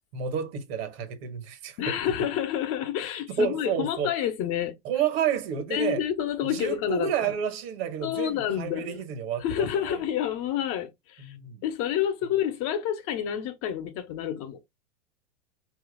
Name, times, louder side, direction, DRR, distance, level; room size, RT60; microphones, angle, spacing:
voice 1, 0.1-2.3 3.3-4.1 4.8-6.0 6.4-10.0 11.2-11.6, right 7 dB, 60° right, 1.5 m, -30 dB
voice 2, 1.8-4.7 5.7-7.3 8.0-9.0 9.4-11.3 11.6-14.6, left 10 dB, 40° left, 1.1 m, -29 dB
4.8 x 2.8 x 3.9 m
hypercardioid pair, 115°, 34 cm